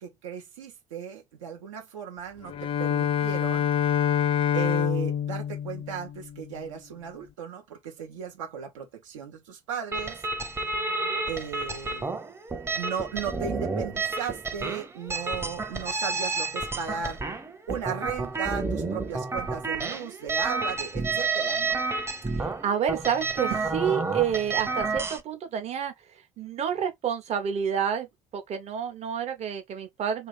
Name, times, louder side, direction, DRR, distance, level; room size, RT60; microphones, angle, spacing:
voice 1, 0.0-2.5 2.8-3.7 4.5-10.2 11.3-12.0 12.8-17.2 17.7-21.8, right 7 dB, 75° right, 0.7 m, -36 dB
Bowed string instrument, 2.4-6.6, left 9 dB, 35° left, 0.4 m, -26 dB
sound 1, 9.9-25.2, right 3 dB, 15° right, 0.7 m, -30 dB
voice 2, 22.3-25.9 26.4-28.1 28.3-30.3, right 8 dB, 40° right, 0.9 m, -29 dB
2.8 x 2.5 x 3.3 m
figure-of-eight pair, 60°, 16 cm